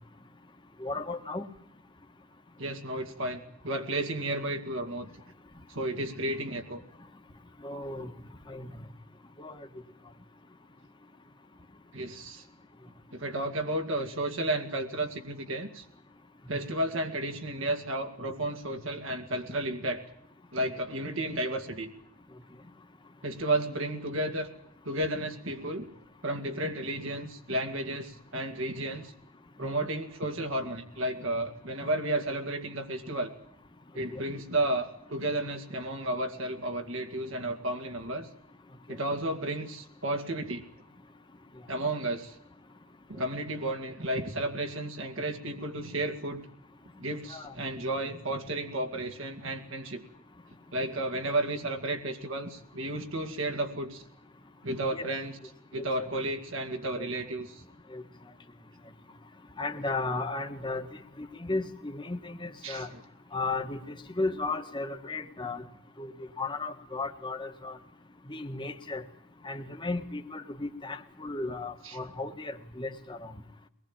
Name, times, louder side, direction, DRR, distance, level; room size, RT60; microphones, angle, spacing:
voice 1, 0.8-1.5 7.6-8.1 8.5-8.7 9.4-9.6 34.1-34.2 47.3-47.5 54.9-55.1 55.7-56.1 57.0-57.1 57.9-58.0 59.6-60.9 61.2-62.9 63.3-65.6 66.0-66.1 66.4-67.8 68.3-69.0 69.4-73.3, left 3 dB, 20° left, 4 dB, 1.5 m, -35 dB
voice 2, 2.6-5.1 5.7-6.8 11.9-12.5 13.1-15.9 16.5-20.0 20.5-21.9 23.2-24.5 24.8-25.9 26.2-29.1 29.6-33.3 33.9-38.3 38.9-40.6 41.7-42.4 43.1-46.4 47.0-50.0 50.7-54.0 54.6-55.4 55.7-57.6 62.6-63.0 71.8-72.0, right 1 dB, 60° right, 4 dB, 2.3 m, -32 dB
23.5 x 19.5 x 8.9 m, 0.74 s
head